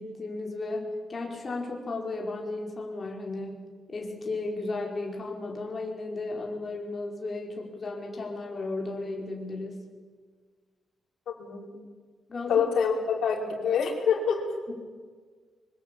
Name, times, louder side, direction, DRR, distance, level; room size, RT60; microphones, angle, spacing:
voice 1, 0.0-3.6 3.9-9.8 12.3-12.7 14.7-14.8, left 2 dB, 35° left, 0 dB, 5.2 m, -34 dB
voice 2, 11.3-11.7 12.5-14.4, left 6 dB, 80° left, 0 dB, 4.9 m, -26 dB
24.0 x 23.5 x 8.7 m, 1.5 s
wide cardioid pair, 135°, 0 cm